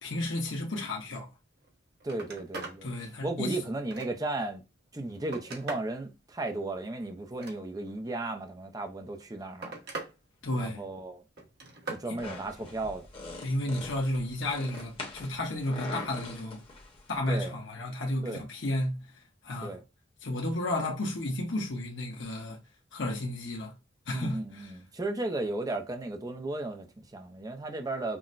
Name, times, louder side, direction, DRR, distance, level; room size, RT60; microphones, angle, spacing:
voice 1, 0.0-1.3 2.8-3.6 10.4-10.8 12.1-12.2 13.4-16.6 17.1-19.0 19.4-19.8 20.2-22.6 22.9-23.7 24.1-24.7, left 1 dB, 80° left, 1.0 m, -32 dB
Telephone, 1.6-1.7 2.0-2.8 3.3-4.4 4.9-6.0 7.2-8.0 9.0-10.1 10.5-11.0 11.4-12.1 14.6-14.9 16.3-16.4, right 3 dB, 60° right, 1.1 m, -42 dB
voice 2, 2.0-2.9 3.2-4.6 4.9-9.7 10.6-11.2 11.9-13.1 17.3-17.5 18.2-18.4 19.6-19.8 24.1-28.2, right 2 dB, 20° right, 0.6 m, -35 dB
sound 1, 12.2-17.2, left 2 dB, 30° left, 1.0 m, -43 dB
5.8 x 2.1 x 2.5 m
head